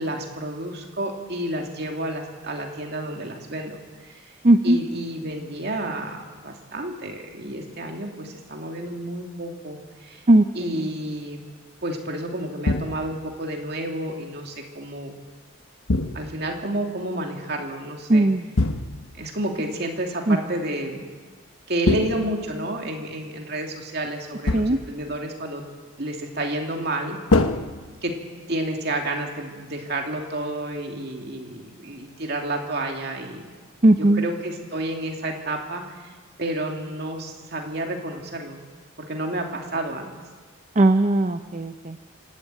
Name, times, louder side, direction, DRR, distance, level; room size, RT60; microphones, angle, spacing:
voice 1, 0.0-4.3 4.6-10.2 10.5-11.4 11.8-15.1 16.1-18.3 19.1-21.1 21.7-25.6 26.0-27.2 28.0-28.2 28.5-33.5 34.0-36.1 36.4-38.6 39.0-40.1, right 1 dB, 50° right, 2 dB, 2.6 m, -30 dB
voice 2, 4.4-4.8 10.3-10.9 18.1-18.4 20.3-20.4 24.5-24.8 33.8-34.2 40.8-42.0, right 1 dB, 35° right, 8 dB, 0.6 m, -18 dB
sound 1, 12.7-13.3 15.9-16.6 18.6-19.2 21.9-22.8 24.5-25.0 27.3-28.4, left 2 dB, 85° left, 1.1 m, -25 dB
25.5 x 12.0 x 9.0 m, 1.4 s
head